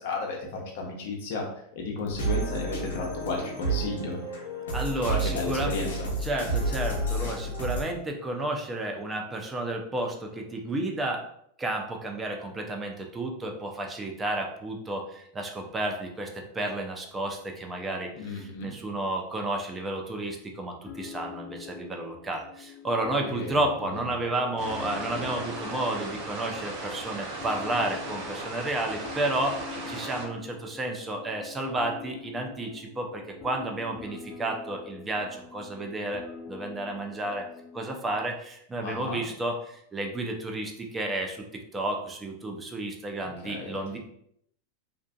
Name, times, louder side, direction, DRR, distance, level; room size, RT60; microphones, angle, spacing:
voice 1, 0.0-1.4 1.7-4.2 5.1-6.1 18.2-18.7 23.2-23.6 23.9-24.0 24.6-25.4 38.8-39.3 43.2-43.8, left 3 dB, 65° left, 0 dB, 0.7 m, -34 dB
sound 1, 2.1-7.8, right 2 dB, 90° left, 0.8 m, -30 dB
voice 2, 4.7-5.8 6.2-11.2 11.6-36.2 36.5-37.5 37.7-41.5 41.7-44.0, right 2 dB, 15° right, 2 dB, 0.5 m, -32 dB
sound 2, 20.9-38.3, left 7 dB, 35° left, 0.4 m, -44 dB
sound 3, 24.6-30.3, right 3 dB, 50° right, 0.8 m, -37 dB
2.5 x 2.4 x 2.3 m, 0.71 s
hypercardioid pair, 115°, 0 cm